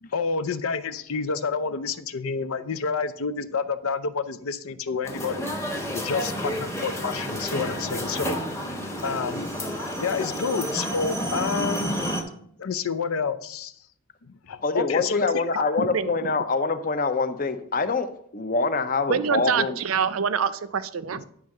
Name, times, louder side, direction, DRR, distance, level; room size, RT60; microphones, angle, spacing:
voice 1, 0.0-5.5 5.9-8.4 8.7-9.5 10.0-12.1 12.6-13.7 14.2-15.6, left 5 dB, 90° left, 13 dB, 0.6 m, -29 dB
sound 1, 5.0-12.2, equal, 15° left, 1.0 m, -30 dB
voice 2, 14.6-19.8, left 4 dB, 40° left, 10 dB, 0.6 m, -25 dB
voice 3, 15.8-16.1 19.1-21.2, right 6 dB, 80° right, 13 dB, 0.5 m, -25 dB
10.0 x 3.6 x 6.5 m, 0.66 s
head